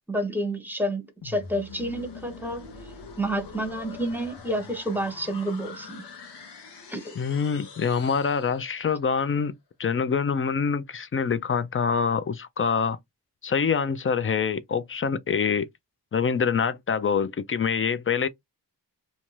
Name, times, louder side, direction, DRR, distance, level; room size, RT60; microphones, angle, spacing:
voice 1, 0.1-2.6 3.2-6.0 6.9-7.1, right 1 dB, 5° right, 0.8 m, -29 dB
sound 1, 1.2-9.1, left 5 dB, 85° left, 0.8 m, -44 dB
voice 2, 7.2-9.5 9.8-13.0 13.4-15.7 16.1-18.3, left 6 dB, 35° left, 0.4 m, -25 dB
2.6 x 2.2 x 3.1 m
cardioid pair, 70°, 40 cm